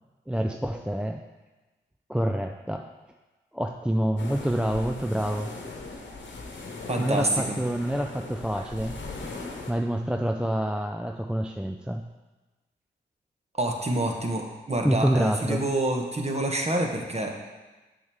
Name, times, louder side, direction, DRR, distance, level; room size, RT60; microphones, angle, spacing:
voice 1, 0.3-1.2 2.1-2.9 3.5-5.5 7.0-9.0 9.7-12.0 14.8-15.6, right 1 dB, 5° right, 4 dB, 0.4 m, -27 dB
sound 1, 4.2-9.7, left 3 dB, 70° left, 1.1 m, -39 dB
voice 2, 6.9-7.6 13.5-17.3, right 1 dB, 30° right, 2 dB, 1.4 m, -27 dB
7.2 x 6.2 x 3.6 m, 1.2 s
supercardioid pair, 40°, 20 cm